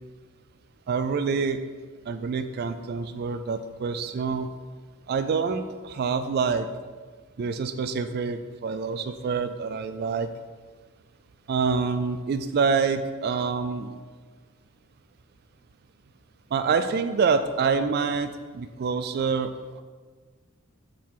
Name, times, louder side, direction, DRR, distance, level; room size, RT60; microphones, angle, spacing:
voice 1, 0.9-1.6 2.0-4.5 5.1-6.7 7.4-10.3 11.5-14.0 16.5-19.8, right 5 dB, 50° right, 9 dB, 0.3 m, -26 dB
7.2 x 3.8 x 4.7 m, 1.5 s
head